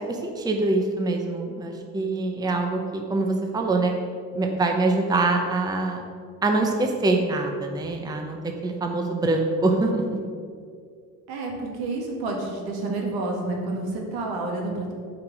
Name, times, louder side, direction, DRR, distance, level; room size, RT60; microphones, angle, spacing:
voice 1, 0.0-3.9 4.3-6.0 6.4-10.2, right 2 dB, 10° right, 3 dB, 0.7 m, -24 dB
voice 2, 11.3-14.9, right 2 dB, 75° right, 0 dB, 2.1 m, -29 dB
9.0 x 5.1 x 6.2 m, 2.2 s
cardioid pair, 145°, 37 cm